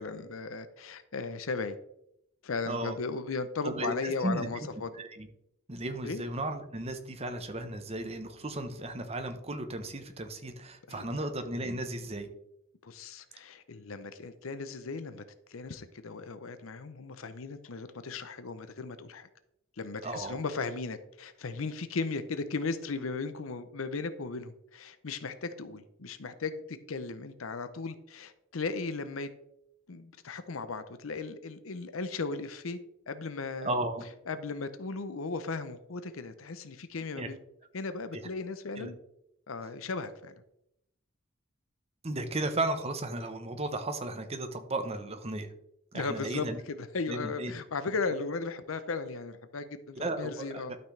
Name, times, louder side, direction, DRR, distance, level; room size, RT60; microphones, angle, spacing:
voice 1, 0.0-1.8 2.4-4.9 6.0-6.2 10.9-11.2 12.8-15.2 15.5-19.3 19.8-29.3 29.9-32.8 33.1-33.7 34.3-37.4 37.7-39.0 39.5-40.3 45.9-50.7, left 4 dB, 90° left, 11 dB, 0.7 m, -36 dB
voice 2, 3.6-4.5 5.0-5.3 5.7-12.3 20.0-20.4 33.6-34.1 37.2-37.3 38.1-38.2 38.8-38.9 42.0-45.5 45.9-46.6 47.1-47.5 50.0-50.8, right 2 dB, 30° right, 7 dB, 1.0 m, -35 dB
12.0 x 6.0 x 3.3 m, 0.79 s
head